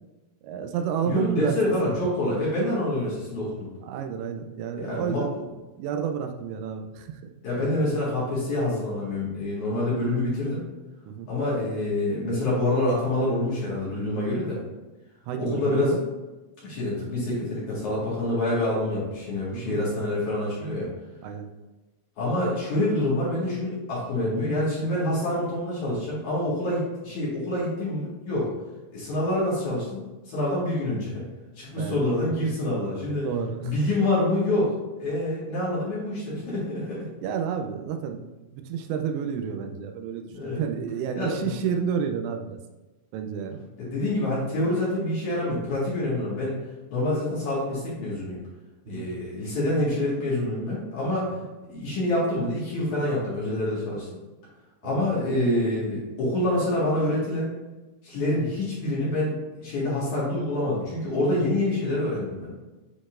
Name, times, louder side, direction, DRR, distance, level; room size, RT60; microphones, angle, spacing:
voice 1, 0.4-2.0 2.8-2.9 3.8-5.4 5.8-7.2 11.1-11.3 15.3-16.1 19.5-19.9 21.2-21.5 31.8-32.4 33.2-34.1 37.2-42.6 43.1-43.6 48.9-49.1 54.8-55.0, right 7 dB, 90° right, 5 dB, 2.9 m, -31 dB
voice 2, 1.1-3.7 4.8-5.2 7.4-10.6 11.3-14.6 15.4-15.9 16.6-20.9 22.2-28.5 28.9-30.0 30.3-31.2 31.6-33.3 33.6-37.1 40.3-40.6 41.2-41.6 43.8-46.6 46.9-48.4 48.9-51.3 51.7-54.1 54.8-57.5 58.0-59.3 59.6-62.5, left 1 dB, 55° left, -7 dB, 2.6 m, -26 dB
10.0 x 4.0 x 2.5 m, 1.1 s
omnidirectional pair, 5.0 m